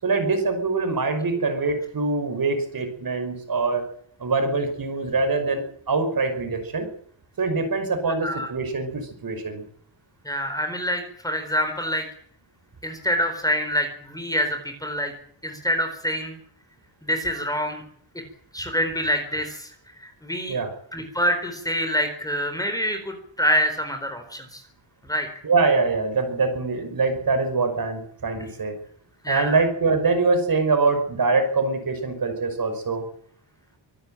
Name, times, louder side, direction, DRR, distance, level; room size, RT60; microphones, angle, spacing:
voice 1, 0.0-3.9 4.2-6.9 7.4-9.6 20.5-20.7 25.4-28.8 29.3-33.0, right 3 dB, 45° right, 7 dB, 5.7 m, -24 dB
voice 2, 10.2-12.1 12.8-15.1 15.4-16.4 17.0-17.8 18.5-19.7 20.0-20.6 20.9-24.6 25.1-25.3 29.2-29.5, equal, 10° left, 6 dB, 4.3 m, -26 dB
25.0 x 12.0 x 9.2 m, 0.62 s
wide cardioid pair, 140°, 47 cm